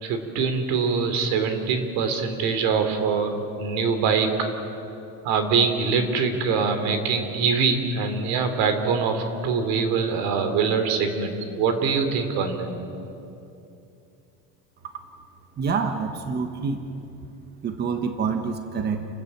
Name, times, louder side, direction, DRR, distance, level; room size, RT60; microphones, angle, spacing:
voice 1, 0.0-4.3 5.2-12.7, right 5 dB, 85° right, 7 dB, 3.0 m, -24 dB
voice 2, 15.6-16.8 17.6-19.1, right 5 dB, 30° right, 6 dB, 1.2 m, -27 dB
29.0 x 13.5 x 8.7 m, 2.7 s
cardioid pair, 165°, 34 cm